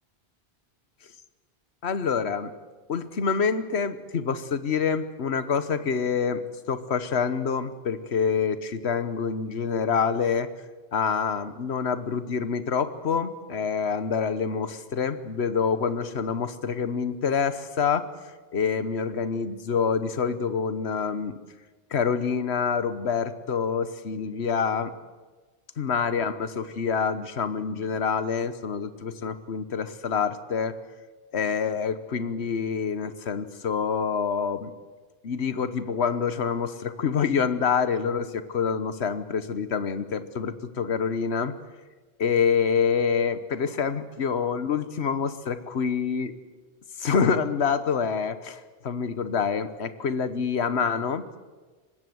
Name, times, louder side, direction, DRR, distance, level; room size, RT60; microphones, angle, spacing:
voice 1, 1.8-2.5 2.9-10.5 10.9-18.1 18.5-21.4 21.9-24.9 25.8-30.8 31.3-34.7 35.2-41.5 42.2-46.3 47.0-51.2, left 6 dB, 80° left, 13 dB, 1.4 m, -26 dB
24.0 x 20.0 x 7.9 m, 1.3 s
omnidirectional pair, 1.1 m